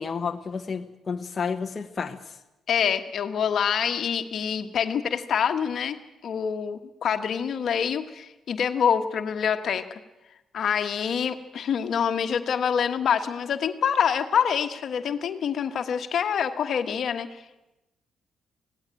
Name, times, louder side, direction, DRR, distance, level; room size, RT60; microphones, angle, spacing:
voice 1, 0.0-2.2, left 5 dB, 35° left, 1.1 m, -31 dB
voice 2, 2.7-6.0 6.2-10.0 10.5-17.3, left 7 dB, 60° left, 1.4 m, -26 dB
17.0 x 17.0 x 9.0 m
cardioid pair, 90°, 0 cm